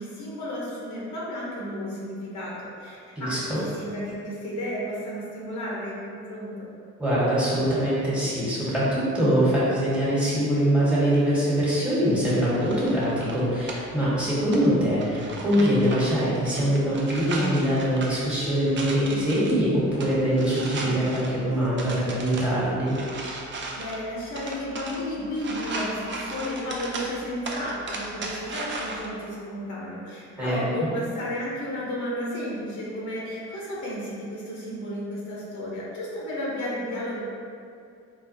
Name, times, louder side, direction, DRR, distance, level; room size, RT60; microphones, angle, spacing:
voice 1, 0.0-6.7 23.7-37.2, equal, 75° left, -6 dB, 0.9 m, -33 dB
voice 2, 3.1-3.6 7.0-22.9 30.4-30.6, equal, 5° right, -10 dB, 1.3 m, -23 dB
sound 1, 12.1-29.1, right 2 dB, 40° right, 0.5 m, -37 dB
3.9 x 2.2 x 2.6 m, 2.4 s
cardioid pair, 90°, 30 cm